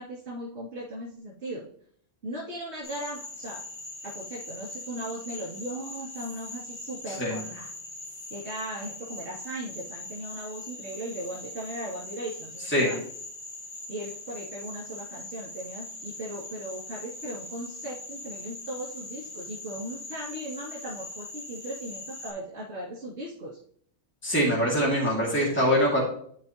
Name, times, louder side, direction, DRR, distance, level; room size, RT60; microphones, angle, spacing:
voice 1, 0.0-1.7 2.2-3.6 4.0-7.7 8.3-13.0 13.9-23.6, right 1 dB, 80° right, -7 dB, 2.6 m, -38 dB
Frog, 2.8-22.3, left 2 dB, 70° left, 3.2 m, -41 dB
voice 2, 7.1-7.4 12.7-12.9 24.2-26.0, equal, 10° left, -4 dB, 2.1 m, -23 dB
13.0 x 4.6 x 2.8 m, 0.62 s
omnidirectional pair, 1.1 m